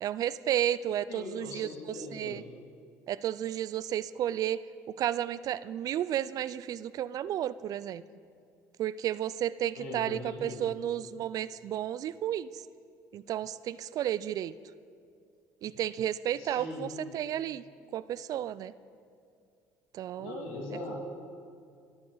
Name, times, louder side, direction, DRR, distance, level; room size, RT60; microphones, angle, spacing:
voice 1, 0.0-2.4 3.1-4.6 4.9-8.0 8.8-12.6 13.1-14.5 15.6-16.9 17.1-17.6 17.9-18.7 19.9-20.5, right 11 dB, 55° right, 18 dB, 0.4 m, -32 dB
voice 2, 1.1-2.4 9.7-10.7 16.4-17.0 20.2-21.0, left 2 dB, 85° left, -1 dB, 2.6 m, -40 dB
22.0 x 8.8 x 3.9 m, 2.4 s
supercardioid pair, 80°, 7 cm